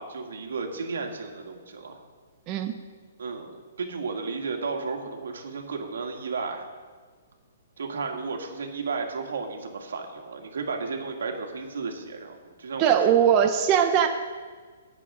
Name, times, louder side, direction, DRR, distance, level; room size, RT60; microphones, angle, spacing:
voice 1, 0.0-2.0 3.2-6.7 7.8-13.3, right 4 dB, 85° right, 3 dB, 2.0 m, -33 dB
voice 2, 12.8-14.1, right 9 dB, 25° right, 5 dB, 0.6 m, -20 dB
19.0 x 6.9 x 3.7 m, 1.5 s
hypercardioid pair, 165°, 0 cm